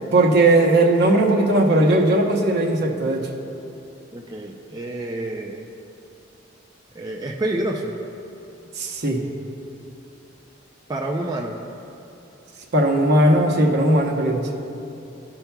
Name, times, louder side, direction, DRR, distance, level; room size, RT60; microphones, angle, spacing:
voice 1, 0.1-3.3 8.7-9.2 12.7-14.5, right 1 dB, 60° right, 1 dB, 0.9 m, -18 dB
voice 2, 4.1-5.7 6.9-7.9 10.9-11.6, right 1 dB, 20° right, -1 dB, 0.4 m, -28 dB
16.5 x 5.6 x 2.3 m, 2.9 s
head